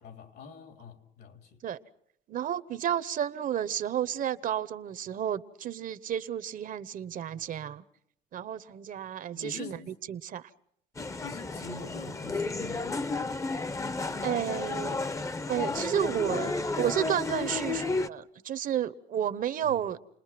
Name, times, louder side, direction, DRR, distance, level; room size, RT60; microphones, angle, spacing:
voice 1, 0.0-1.6 9.4-9.9 11.2-13.3 15.7-15.9 17.3-17.6 19.6-19.8, left 4 dB, 70° left, 3.6 m, -45 dB
voice 2, 2.3-7.8 8.3-9.8 10.1-10.5 14.2-15.0 15.5-20.0, right 10 dB, 55° right, 1.0 m, -31 dB
sound 1, 11.0-18.1, left 3 dB, 20° left, 0.9 m, -32 dB
30.0 x 20.5 x 6.0 m
cardioid pair, 110°, 17 cm